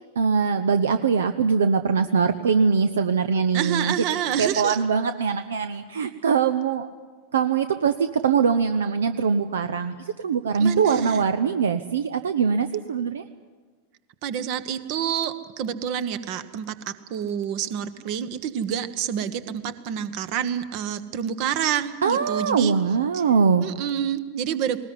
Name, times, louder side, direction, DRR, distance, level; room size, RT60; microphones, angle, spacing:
voice 1, 0.2-6.9 7.3-13.2 22.0-23.7, right 6 dB, 65° right, 11 dB, 0.7 m, -22 dB
voice 2, 3.5-4.8 10.6-11.2 14.2-22.7 23.1-23.2 23.6-24.8, right 9 dB, 45° right, 13 dB, 1.3 m, -28 dB
19.5 x 19.5 x 9.7 m, 1.5 s
figure-of-eight pair, 90°, 0 cm